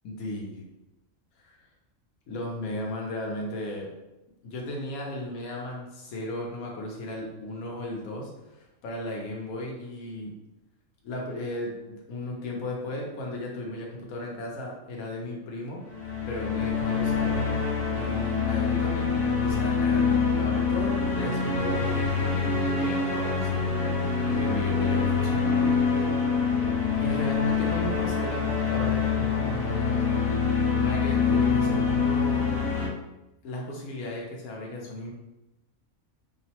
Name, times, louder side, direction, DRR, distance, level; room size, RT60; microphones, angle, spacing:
voice 1, 0.0-0.6 1.4-1.6 2.3-3.9 4.4-10.3 11.0-15.8 16.3-17.3 18.0-26.1 27.0-30.2 30.8-32.6 33.4-35.1, left 1 dB, 90° left, -1 dB, 1.1 m, -35 dB
sound 1, 15.9-32.9, left 5 dB, 70° left, 1.0 m, -25 dB
2.9 x 2.0 x 2.8 m, 0.96 s
omnidirectional pair, 1.4 m